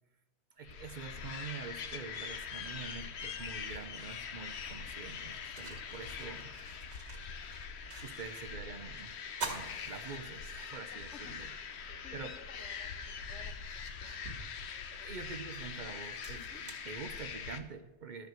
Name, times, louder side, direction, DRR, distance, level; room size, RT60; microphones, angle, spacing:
sound 1, 0.6-17.6, left 6 dB, 70° left, 1.0 m, -43 dB
voice 1, 0.6-6.5 8.0-9.2 9.4-11.5 11.8-12.4 14.9-18.3, right 5 dB, 50° right, 9 dB, 0.7 m, -46 dB
sound 2, 5.1-8.5 8.8-8.9 9.3-10.8 11.2-11.3 12.7-12.8 13.4-17.6, right 3 dB, 70° right, 2.0 m, -47 dB
voice 2, 10.9-11.7 12.0-14.1 16.4-16.6, left 5 dB, 85° left, 8 dB, 1.3 m, -55 dB
12.0 x 5.3 x 7.6 m, 1.1 s
omnidirectional pair, 1.2 m